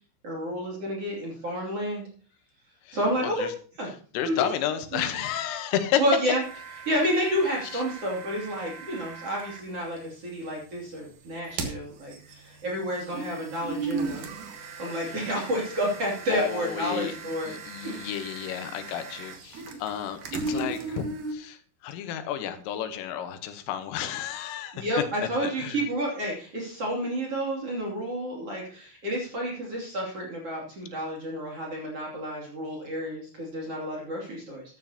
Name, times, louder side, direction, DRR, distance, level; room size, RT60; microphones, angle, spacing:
voice 1, 0.2-2.1 2.9-3.5 3.8-3.9 4.3-4.4 4.9-5.0 6.0-6.4 6.8-14.2 14.8-17.5 17.8-18.1 24.7-34.6, equal, 35° right, -2 dB, 3.0 m, -30 dB
voice 2, 4.1-6.0 7.7-7.8 15.1-15.3 16.3-17.1 17.5-24.9 25.2-25.3 25.6-25.8, left 10 dB, 85° left, 8 dB, 3.7 m, -31 dB
sound 1, 6.4-9.6 11.3-21.3, right 4 dB, 70° right, 2.0 m, -37 dB
13.0 x 12.0 x 2.9 m, 0.41 s
omnidirectional pair, 5.7 m